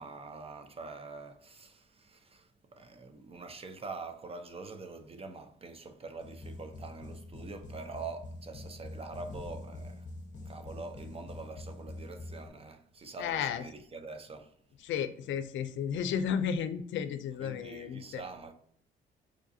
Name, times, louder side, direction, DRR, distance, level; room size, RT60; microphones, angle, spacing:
voice 1, 0.0-10.1 10.4-14.5 17.4-18.5, right 3 dB, 30° right, 0.6 m, -45 dB
sound 1, 6.2-12.5, left 2 dB, 40° left, 1.0 m, -45 dB
voice 2, 13.2-13.6 14.8-18.2, left 8 dB, 70° left, 0.5 m, -33 dB
4.9 x 2.4 x 2.6 m
cardioid pair, 90°, 20 cm